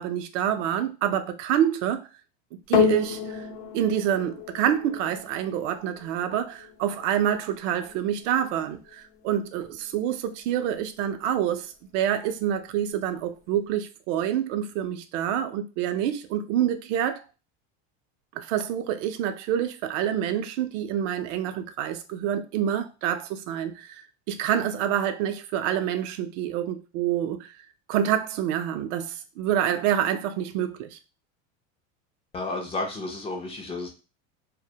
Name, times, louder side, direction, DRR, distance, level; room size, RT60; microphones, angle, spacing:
voice 1, 0.0-2.1 2.5-3.5 3.7-17.2 18.4-27.5 27.9-31.0, right 10 dB, 75° right, 0.5 m, -27 dB
sound 1, 2.7-11.3 12.0-12.1, left 7 dB, 65° left, 0.6 m, -32 dB
voice 2, 32.3-33.9, left 2 dB, 15° left, 0.3 m, -32 dB
2.1 x 2.1 x 2.7 m
supercardioid pair, 130°, 37 cm